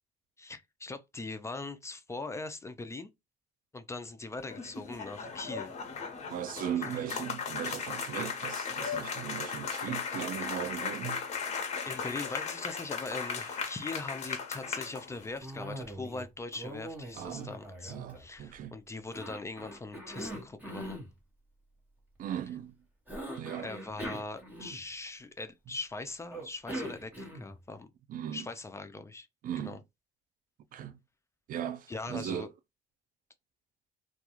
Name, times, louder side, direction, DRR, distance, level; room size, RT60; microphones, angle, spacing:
voice 1, 0.4-3.1 3.7-5.7 6.9-7.0 11.9-21.1 23.6-27.9 28.3-29.3 29.6-29.8 31.9-32.5, left 3 dB, 15° left, 0.4 m, -41 dB
sound 1, 4.4-15.4, left 6 dB, 40° left, 0.8 m, -37 dB
voice 2, 6.3-11.2 17.2-17.5 17.9-18.7 22.2-22.7 23.4-23.7 28.1-28.5 29.4-29.8 30.7-31.0 31.5-32.5, right 10 dB, 55° right, 0.4 m, -38 dB
Cough, 15.4-16.3 16.5-18.6 19.1-21.1 23.1-25.1 26.3-27.6, right 1 dB, 10° right, 1.1 m, -42 dB
2.4 x 2.2 x 2.9 m
cardioid pair, 110°, 17 cm